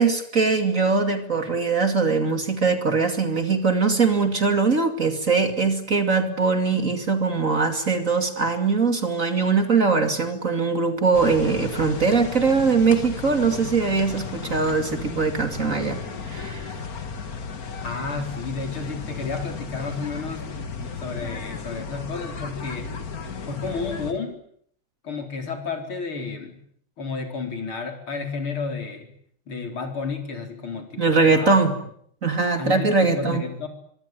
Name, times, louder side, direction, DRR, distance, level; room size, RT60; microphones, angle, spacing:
voice 1, 0.0-16.7 31.0-31.8 32.2-33.4, right 4 dB, 35° right, 7 dB, 2.8 m, -21 dB
sound 1, 11.1-24.1, left 5 dB, 45° left, 2.2 m, -34 dB
voice 2, 17.8-20.5 21.0-22.9 23.5-24.4 25.0-26.6 27.0-29.1 29.5-31.6 32.6-33.7, left 4 dB, 70° left, 5 dB, 5.1 m, -31 dB
24.5 x 24.5 x 9.3 m, 0.66 s
omnidirectional pair, 2.4 m